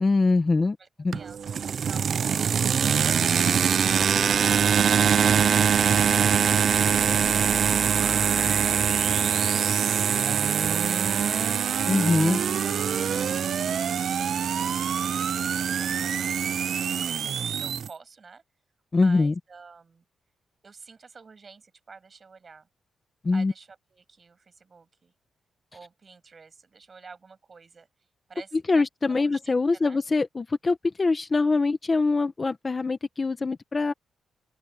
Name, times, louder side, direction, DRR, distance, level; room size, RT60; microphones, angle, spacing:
voice 1, 0.0-0.8 1.0-1.2 11.9-12.4 18.9-19.3 23.2-23.5 28.7-33.9, left 3 dB, 25° left, 1.1 m, -23 dB
voice 2, 1.1-3.6 10.2-11.4 11.9-18.4 18.9-20.0 20.6-22.7 23.3-25.1 25.7-27.9 28.3-30.0, right 5 dB, 30° right, 7.0 m, -50 dB
sound 1, 1.1-17.9, right 7 dB, 50° right, 0.5 m, -24 dB
sound 2, 5.3-17.9, right 9 dB, 75° right, 1.1 m, -33 dB
open air
wide cardioid pair, 160°, 0 cm